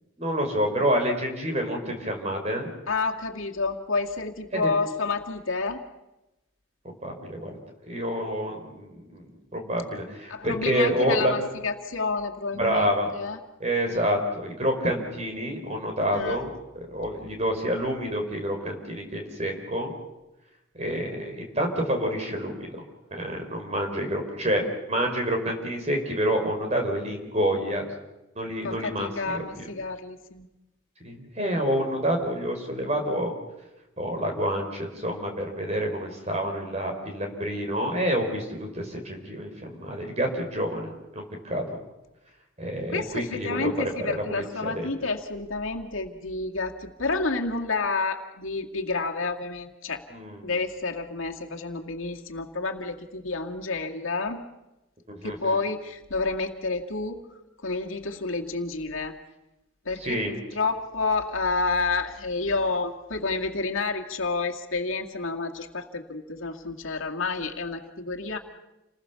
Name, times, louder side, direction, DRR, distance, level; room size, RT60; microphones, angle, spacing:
voice 1, 0.2-2.7 4.5-4.7 6.8-7.5 7.9-11.4 12.5-13.1 13.6-19.9 20.7-22.7 23.1-24.6 24.9-27.8 28.3-29.4 31.0-33.3 34.0-41.8 42.6-44.9 50.1-50.4 55.1-55.6 60.0-60.3, equal, 30° right, 3 dB, 4.6 m, -28 dB
voice 2, 2.9-5.8 10.3-13.4 13.9-14.1 16.1-16.4 28.6-30.5 42.9-50.0 50.4-54.4 55.2-57.2 57.6-59.2 59.9-68.4, left 3 dB, 75° left, 2 dB, 2.2 m, -29 dB
29.0 x 20.5 x 7.0 m, 0.99 s
head